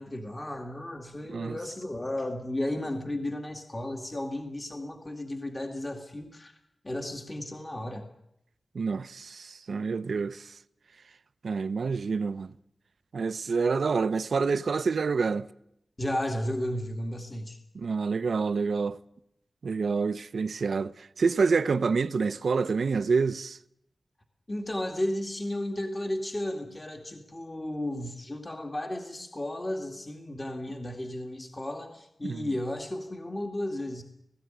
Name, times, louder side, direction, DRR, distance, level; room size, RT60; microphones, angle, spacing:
voice 1, 0.0-6.6 6.8-8.1 16.0-17.6 24.5-34.0, left 1 dB, 25° left, 2.2 m, -34 dB
voice 2, 8.7-10.5 11.4-12.5 13.1-15.5 17.7-19.0 19.6-23.6 32.2-32.5, right 4 dB, 75° right, 0.7 m, -27 dB
18.0 x 16.5 x 9.1 m
wide cardioid pair, 75°, 0 cm